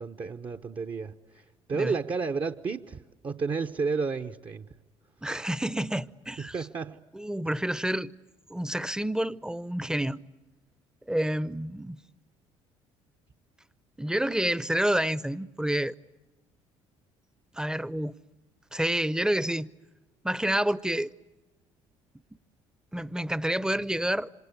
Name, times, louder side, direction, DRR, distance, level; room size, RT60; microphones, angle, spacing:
voice 1, 0.0-4.7 6.5-7.0, right 4 dB, 35° right, 1.0 m, -32 dB
voice 2, 5.2-6.7 7.1-8.1 8.5-10.2 11.1-12.0 14.0-15.9 17.5-18.1 18.7-19.7 20.2-21.1 22.9-24.3, right 1 dB, 5° right, 0.8 m, -28 dB
27.0 x 26.5 x 8.2 m
hypercardioid pair, 55°, 15 cm